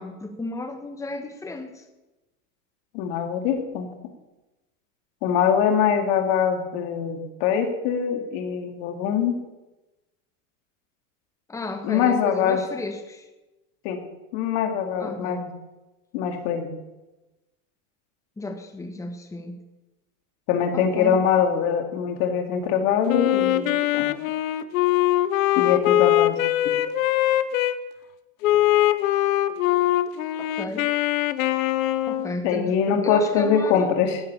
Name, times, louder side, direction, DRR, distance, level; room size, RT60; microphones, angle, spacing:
voice 1, 0.0-1.8 11.5-13.3 15.0-15.5 18.4-19.6 20.7-21.2 30.3-30.9 32.1-34.0, left 2 dB, 10° left, 1.3 m, -34 dB
voice 2, 2.9-3.9 5.2-9.4 11.9-12.6 13.8-14.0 14.3-15.5 16.1-16.7 20.5-24.1 25.6-26.4 26.6-26.7 32.4-34.2, left 7 dB, 65° left, 2.3 m, -23 dB
Wind instrument woodwind instrument, 23.1-27.8 28.4-32.4, left 14 dB, 85° left, 1.0 m, -22 dB
13.5 x 7.7 x 8.7 m
supercardioid pair, 130°, 40 cm